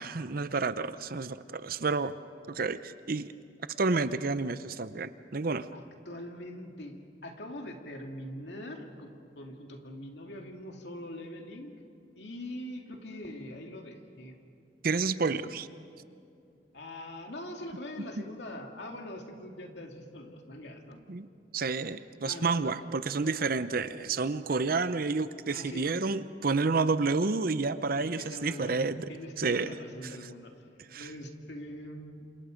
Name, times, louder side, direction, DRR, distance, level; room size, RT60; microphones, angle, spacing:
voice 1, 0.0-2.1 2.5-3.3 3.8-5.7 14.8-15.7 21.1-21.3 21.5-29.1 29.4-29.7 30.9-31.1, right 4 dB, 55° right, 13 dB, 0.7 m, -30 dB
voice 2, 5.7-11.7 12.2-14.4 16.7-21.0 22.2-22.9 23.2-23.5 25.5-25.9 28.0-28.8 29.1-30.5 30.9-32.3, left 1 dB, 70° left, 2 dB, 2.4 m, -43 dB
28.5 x 27.0 x 5.2 m, 2.5 s
head